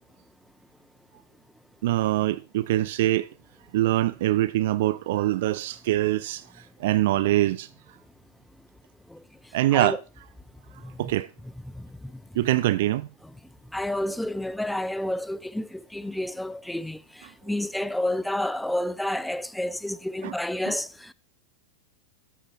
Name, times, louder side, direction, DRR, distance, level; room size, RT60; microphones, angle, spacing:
voice 1, 1.8-3.3 3.7-6.4 6.8-7.7 9.5-10.0 11.0-11.3 12.4-13.1 20.2-20.3 20.7-20.8, right 15 dB, 55° right, 0.4 m, -23 dB
voice 2, 10.8-11.1 11.4-12.2 13.7-21.1, left 1 dB, 5° left, 0.4 m, -30 dB
13.5 x 9.3 x 3.1 m
figure-of-eight pair, 90°, 0 cm